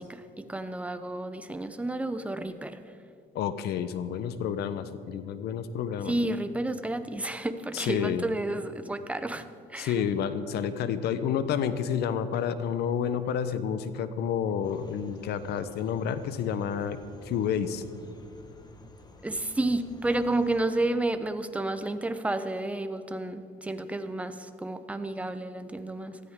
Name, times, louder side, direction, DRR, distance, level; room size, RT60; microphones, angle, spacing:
voice 1, 0.0-2.8 6.0-10.0 19.2-26.2, right 2 dB, 10° right, 10 dB, 0.7 m, -31 dB
voice 2, 3.3-6.1 7.7-8.2 9.8-17.0 17.2-17.8, left 8 dB, 75° left, 12 dB, 0.9 m, -29 dB
sound 1, 14.6-20.6, equal, 25° left, 1.3 m, -51 dB
19.0 x 13.5 x 3.7 m, 2.4 s
cardioid pair, 110°, 17 cm